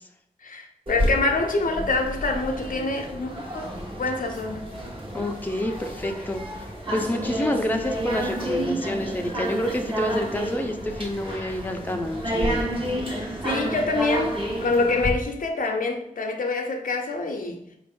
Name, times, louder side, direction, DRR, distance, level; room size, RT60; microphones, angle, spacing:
voice 1, 0.4-3.6 4.0-4.7 13.2-17.6, left 3 dB, 75° left, 0.6 m, -26 dB
sound 1, 0.9-15.1, equal, 40° right, 1.0 m, -30 dB
voice 2, 5.1-6.4 6.9-12.7, left 1 dB, 15° left, 0.5 m, -28 dB
4.1 x 2.5 x 3.7 m
wide cardioid pair, 65°, 14 cm